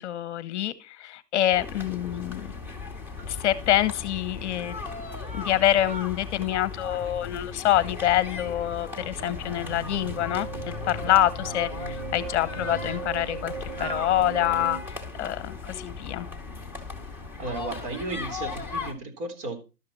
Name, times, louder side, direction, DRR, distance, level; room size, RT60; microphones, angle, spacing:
voice 1, 0.0-2.5 3.3-4.8 5.3-16.3, left 12 dB, 45° left, 1.1 m, -26 dB
sound 1, 1.5-18.9, left 4 dB, 5° right, 2.3 m, -37 dB
sound 2, 9.0-14.8, right 5 dB, 65° right, 6.9 m, -38 dB
voice 2, 17.4-19.6, right 2 dB, 35° right, 3.7 m, -34 dB
13.0 x 10.5 x 4.2 m
hypercardioid pair, 140°, 48 cm